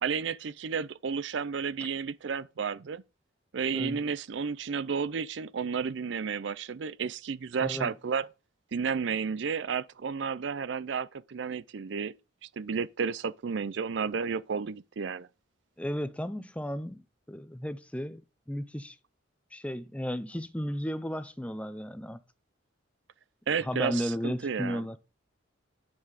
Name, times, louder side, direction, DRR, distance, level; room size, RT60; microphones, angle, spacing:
voice 1, 0.0-3.0 3.5-8.3 8.7-12.1 12.4-15.3 23.5-24.8, right 6 dB, 65° right, 0.5 m, -32 dB
voice 2, 7.6-7.9 15.8-17.0 17.3-18.2 18.5-19.0 19.5-22.2 23.6-25.0, equal, 5° left, 0.6 m, -34 dB
9.8 x 5.9 x 5.0 m
head